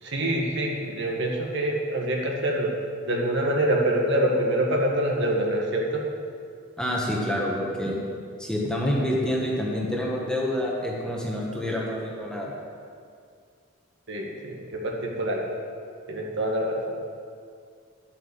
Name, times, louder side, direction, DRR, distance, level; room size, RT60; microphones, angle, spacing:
voice 1, 0.0-2.7 3.0-6.0 14.1-15.5 16.1-17.0, right 1 dB, 55° right, -1 dB, 1.6 m, -25 dB
voice 2, 6.8-8.0 8.4-12.5, left 1 dB, 5° left, -3 dB, 1.5 m, -27 dB
11.0 x 7.6 x 7.0 m, 2.3 s
head